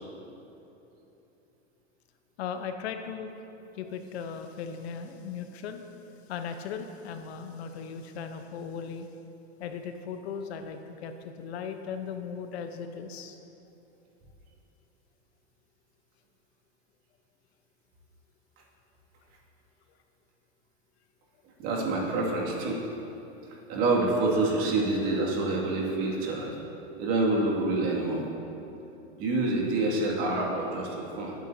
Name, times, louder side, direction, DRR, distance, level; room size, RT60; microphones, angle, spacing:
voice 1, 2.4-3.3 3.7-5.8 6.3-9.1 9.6-13.4, left 6 dB, 70° left, 7 dB, 1.0 m, -37 dB
voice 2, 21.6-22.8 23.7-26.5 27.0-28.2 29.2-31.3, right 2 dB, 45° right, -2 dB, 2.3 m, -27 dB
18.0 x 9.1 x 2.8 m, 3.0 s
supercardioid pair, 150°, 33 cm